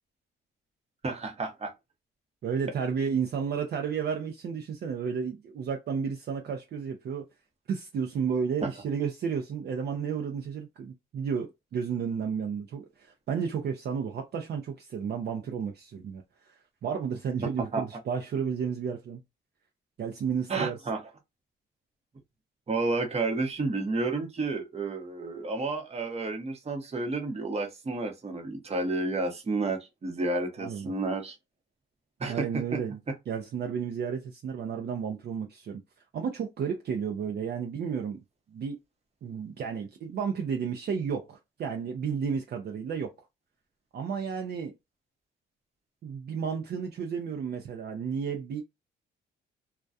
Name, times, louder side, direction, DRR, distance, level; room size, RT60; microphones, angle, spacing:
voice 1, 1.0-1.7 8.6-8.7 17.7-17.8 20.5-21.0 22.7-31.4 32.2-32.8, right 3 dB, 30° right, 0.9 m, -31 dB
voice 2, 2.4-7.2 7.7-16.5 16.8-19.2 20.0-20.8 30.6-30.9 32.3-33.0 33.3-35.8 36.1-38.2 38.5-38.8 39.2-43.1 43.9-44.7 46.0-48.6, right 6 dB, 55° right, 0.5 m, -32 dB
2.3 x 2.2 x 2.5 m
cardioid pair, 90°, 20 cm